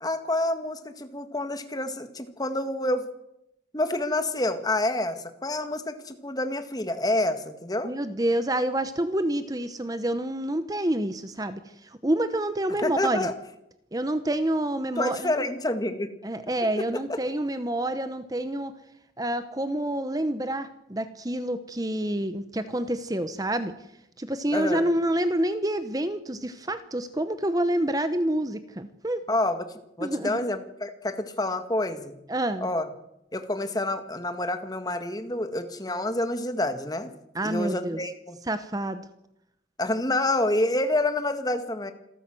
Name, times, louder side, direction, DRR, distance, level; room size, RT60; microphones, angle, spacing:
voice 1, 0.0-3.1 3.7-7.9 12.8-13.3 15.0-16.1 24.5-24.9 29.3-29.6 30.0-32.1 32.6-32.8 33.3-37.1 37.4-38.4 39.8-41.9, left 1 dB, 20° left, 8 dB, 1.9 m, -28 dB
voice 2, 7.8-13.3 13.9-15.5 16.2-18.7 19.2-23.7 24.2-29.2 30.0-30.4 32.3-32.7 37.3-38.0 38.5-39.0, right 1 dB, 20° right, 11 dB, 1.0 m, -28 dB
27.0 x 13.5 x 7.8 m, 0.84 s
head